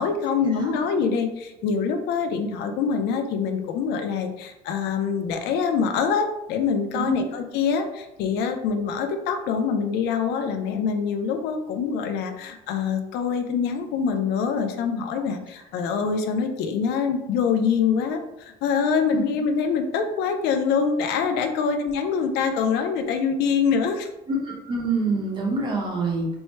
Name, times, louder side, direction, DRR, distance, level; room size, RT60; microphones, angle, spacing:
voice 1, 0.0-24.1, left 6 dB, 75° left, 6 dB, 0.5 m, -25 dB
voice 2, 0.5-0.9 6.9-7.3 19.1-19.2 21.5-21.7 24.3-26.3, right 3 dB, 25° right, -1 dB, 0.8 m, -26 dB
4.3 x 2.1 x 4.4 m, 0.90 s
cardioid pair, 180°, 17 cm